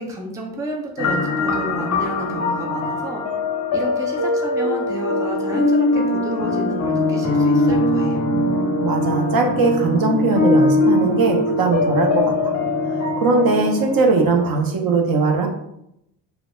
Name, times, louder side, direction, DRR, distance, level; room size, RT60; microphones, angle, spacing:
voice 1, 0.0-3.2 3.7-8.3, right 1 dB, 10° right, 1 dB, 0.4 m, -31 dB
sound 1, 1.0-14.5, left 2 dB, 35° left, 0.6 m, -21 dB
voice 2, 8.3-12.5 13.2-15.5, right 4 dB, 55° right, 3 dB, 0.6 m, -20 dB
2.2 x 2.0 x 2.9 m, 0.80 s
supercardioid pair, 70°, 44 cm